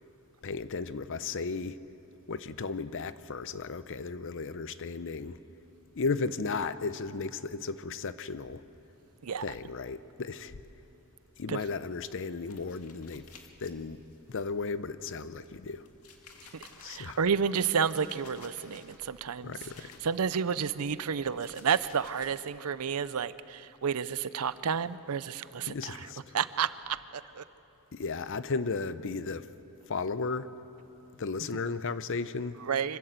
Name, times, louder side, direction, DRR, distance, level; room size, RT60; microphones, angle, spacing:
voice 1, 0.4-1.8 2.3-5.4 5.9-8.6 9.4-10.6 11.4-13.3 13.6-14.0 14.3-15.9 16.8-17.2 19.4-20.0 25.7-26.3 27.9-29.5 29.9-30.5 31.1-32.6, left 4 dB, 60° left, 14 dB, 0.7 m, -35 dB
sound 1, 11.7-14.9 15.2-20.3 20.6-22.3, left 4 dB, 80° left, 2.0 m, -56 dB
voice 2, 16.5-26.1 26.3-27.4 32.7-33.0, right 7 dB, 85° right, 16 dB, 0.6 m, -31 dB
26.0 x 13.5 x 8.1 m, 2.8 s
head